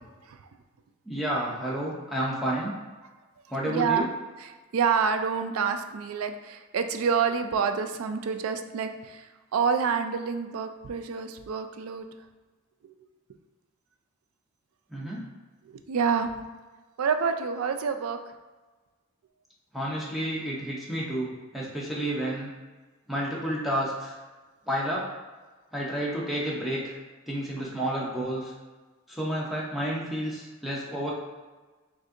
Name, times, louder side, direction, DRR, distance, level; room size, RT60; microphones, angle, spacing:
voice 1, 1.1-2.7 3.5-4.1 14.9-15.2 19.7-21.3 21.5-22.5 23.1-24.1 24.7-25.0 25.7-26.9 27.3-28.5 29.1-31.1, right 1 dB, ahead, -5 dB, 0.6 m, -30 dB
voice 2, 3.6-4.1 4.4-12.1 12.8-12.9 15.7-16.3 17.0-18.3 27.6-27.7, right 6 dB, 80° right, 8 dB, 0.4 m, -28 dB
6.2 x 2.5 x 2.5 m, 1.3 s
head